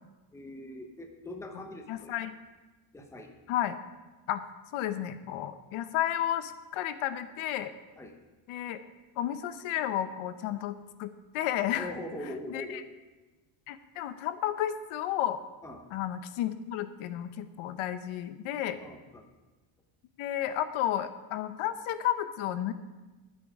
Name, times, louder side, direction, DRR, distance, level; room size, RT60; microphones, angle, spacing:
voice 1, 0.3-2.1 2.9-3.3 8.0-8.1 11.8-12.9 15.6-15.8 18.8-19.3, left 1 dB, 5° left, 4 dB, 0.8 m, -42 dB
voice 2, 1.9-2.3 3.5-3.8 4.3-4.4 4.7-7.7 8.5-8.8 9.2-11.9 12.5-12.8 13.7-15.4 15.9-18.8 20.2-22.7, left 11 dB, 75° left, 12 dB, 0.9 m, -32 dB
12.0 x 9.6 x 4.9 m, 1.2 s
cardioid pair, 160°, 50 cm